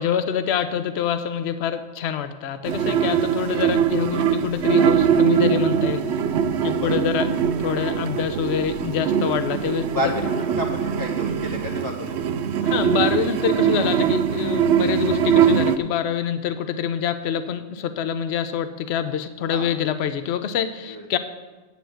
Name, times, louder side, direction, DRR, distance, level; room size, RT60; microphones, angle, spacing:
voice 1, 0.0-6.0 6.6-7.3 7.6-9.8 10.2-10.3 12.6-21.2, left 8 dB, 60° left, 11 dB, 0.9 m, -26 dB
sound 1, 2.6-15.8, right 8 dB, 65° right, 0.8 m, -22 dB
voice 2, 9.8-12.2 19.5-19.7 20.9-21.1, left 1 dB, 20° left, -1 dB, 0.9 m, -30 dB
8.4 x 6.9 x 7.8 m, 1.2 s
omnidirectional pair, 1.3 m